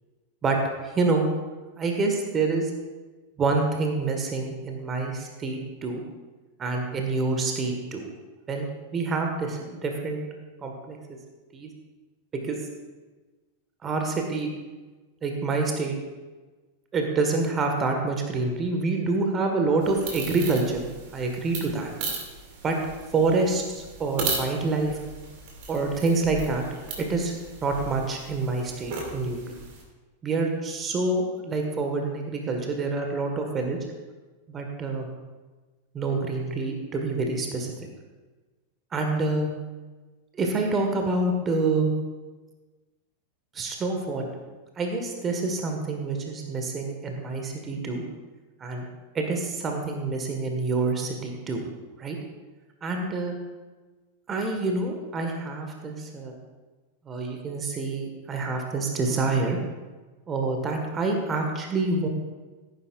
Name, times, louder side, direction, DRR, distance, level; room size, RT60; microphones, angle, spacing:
voice 1, 0.4-1.2 1.8-2.7 3.4-6.0 6.6-8.1 8.5-8.7 8.9-10.3 10.6-11.0 11.5-11.7 12.3-12.6 13.8-14.5 15.2-16.0 16.9-20.8 21.1-21.9 22.6-22.7 23.1-25.0 25.7-26.6 27.0-27.3 27.6-29.5 30.2-33.8 34.5-35.1 35.9-37.7 38.9-39.5 40.3-41.9 43.5-44.3 44.8-48.0 48.6-48.8 49.1-51.6 52.0-52.2 52.8-53.4 54.3-56.3 57.0-59.6 60.3-62.1, right 3 dB, 25° right, 3 dB, 1.6 m, -27 dB
sound 1, 19.8-29.8, right 4 dB, 45° right, 2.4 m, -37 dB
16.0 x 9.4 x 2.5 m, 1.3 s
figure-of-eight pair, 90°, 0 cm